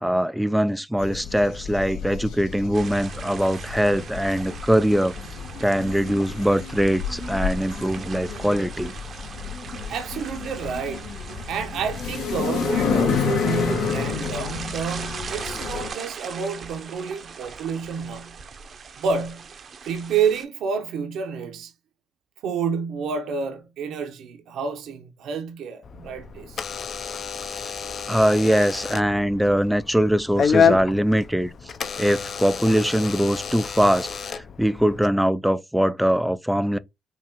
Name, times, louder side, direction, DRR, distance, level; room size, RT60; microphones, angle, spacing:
voice 1, 0.0-5.1 5.6-8.9 27.6-27.7 28.1-31.5 32.0-36.8, equal, 5° right, 0.4 m, -22 dB
sound 1, 1.0-15.9, left 6 dB, 90° left, 1.6 m, -30 dB
sound 2, 2.7-20.4, right 5 dB, 50° right, 0.7 m, -39 dB
voice 2, 9.9-11.1 11.5-18.4 18.9-19.4 19.8-21.7 22.4-26.6, right 6 dB, 80° right, 0.9 m, -29 dB
Door / Alarm, 25.8-35.1, left 6 dB, 55° left, 0.5 m, -28 dB
5.6 x 2.5 x 3.0 m
cardioid pair, 90°, 0 cm